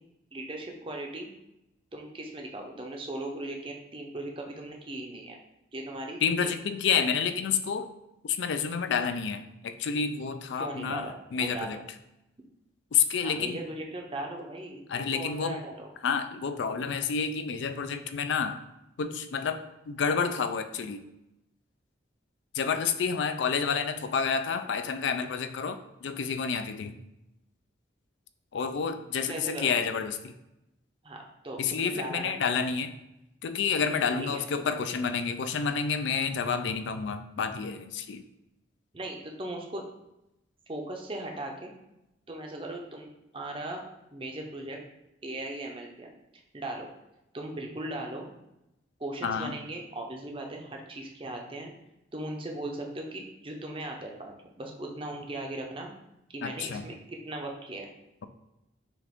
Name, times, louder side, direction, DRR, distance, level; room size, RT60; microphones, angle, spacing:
voice 1, 0.3-1.3 1.9-5.4 5.7-6.5 10.6-11.8 13.2-15.9 29.3-29.7 31.0-32.3 34.2-34.4 38.9-39.8 40.7-41.7 42.3-43.8 44.1-44.8 45.2-46.1 46.5-46.9 47.3-48.3 49.0-51.7 52.1-55.9 56.3-57.9, right 1 dB, 25° right, 1 dB, 0.6 m, -38 dB
voice 2, 6.2-7.9 8.2-11.8 12.9-13.6 14.9-15.6 16.0-18.6 19.0-19.6 19.9-21.0 22.5-26.9 28.5-30.3 31.6-32.9 33.4-38.3 49.2-49.6 56.4-56.9, left 6 dB, 70° left, 9 dB, 0.4 m, -29 dB
6.0 x 2.5 x 3.5 m, 0.90 s
head